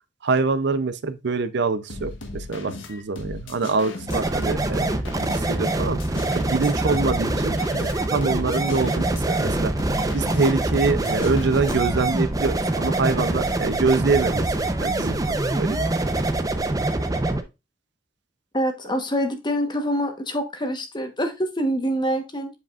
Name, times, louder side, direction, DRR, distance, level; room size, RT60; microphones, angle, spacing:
voice 1, 0.2-4.9 5.4-6.0 6.3-9.7 10.1-14.4 14.8-15.2 15.6-15.8, right 4 dB, 65° right, 0.5 m, -25 dB
sound 1, 1.9-12.0, left 2 dB, 75° left, 1.3 m, -37 dB
sound 2, 4.1-17.4, right 2 dB, 20° right, 0.6 m, -24 dB
voice 2, 18.5-22.5, equal, 25° left, 1.1 m, -25 dB
7.8 x 5.0 x 2.4 m
head